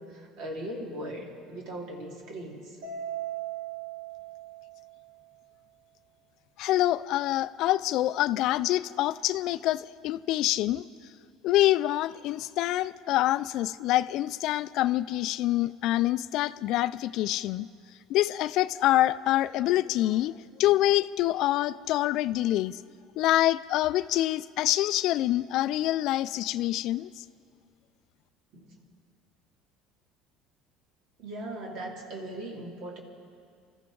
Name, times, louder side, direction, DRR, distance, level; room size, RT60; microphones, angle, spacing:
voice 1, 0.0-2.8 28.5-28.8 31.2-33.0, right 1 dB, 65° right, 0 dB, 2.7 m, -39 dB
Mallet percussion, 2.8-5.3, right 10 dB, 85° right, 2.7 m, -38 dB
voice 2, 6.6-10.8 11.4-17.7 18.1-22.8 23.2-27.2, left 15 dB, 65° left, 16 dB, 0.3 m, -26 dB
25.0 x 14.0 x 3.9 m, 2.2 s
supercardioid pair, 110°, 0 cm